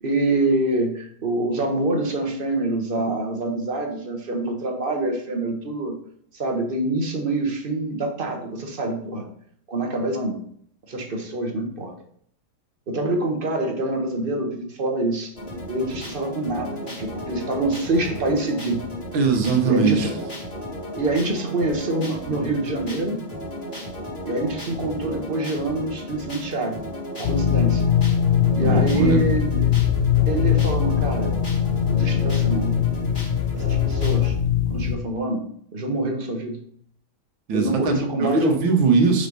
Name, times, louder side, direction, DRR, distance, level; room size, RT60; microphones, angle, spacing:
voice 1, 0.0-6.0 6.3-9.3 9.7-10.4 10.9-11.9 12.9-15.3 15.7-18.8 19.6-20.3 20.9-23.2 24.2-26.8 27.2-27.8 28.6-29.7 30.2-31.4 31.9-32.8 33.5-34.4 34.7-36.6 37.5-38.5, right 2 dB, 30° right, 2 dB, 1.2 m, -26 dB
sound 1, 15.3-34.3, equal, 30° left, 2.3 m, -35 dB
voice 2, 19.1-20.1 28.6-29.2 37.5-39.3, right 4 dB, 75° right, 3 dB, 1.9 m, -20 dB
sound 2, 27.2-34.9, left 9 dB, 80° left, 0.5 m, -21 dB
5.2 x 4.9 x 5.4 m, 0.64 s
omnidirectional pair, 2.1 m